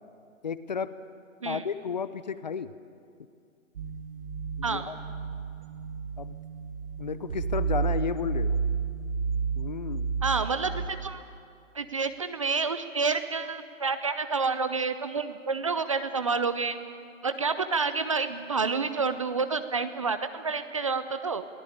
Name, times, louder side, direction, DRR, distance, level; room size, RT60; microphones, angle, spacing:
voice 1, 0.4-0.9 1.4-2.7 4.6-4.9 6.2-6.4 7.0-8.6 9.6-10.1, left 6 dB, 35° left, 15 dB, 0.7 m, -33 dB
sound 1, 3.8-10.9, right 5 dB, 40° right, 2.3 m, -31 dB
voice 2, 10.2-11.2 11.7-16.8 17.2-21.4, right 4 dB, 25° right, 11 dB, 0.6 m, -29 dB
23.0 x 17.0 x 8.6 m, 2.3 s
figure-of-eight pair, 150°, 40 cm